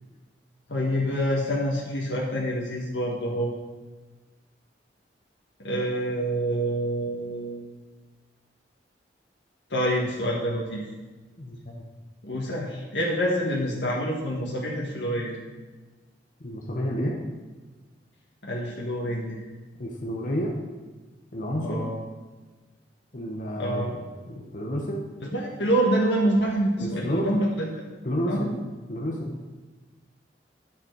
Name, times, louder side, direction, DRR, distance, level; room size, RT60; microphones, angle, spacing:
voice 1, 0.7-3.5 5.6-7.7 9.7-10.9 12.2-15.4 18.4-19.4 21.6-22.0 23.6-23.9 25.2-27.8 28.3-28.6, equal, 90° left, -4 dB, 1.6 m, -27 dB
voice 2, 11.4-11.8 16.4-17.2 19.8-20.5 21.3-21.8 23.1-25.1 26.8-27.3 28.0-28.6 28.9-29.3, equal, 50° left, -1 dB, 1.1 m, -30 dB
10.5 x 7.2 x 4.7 m, 1.3 s
head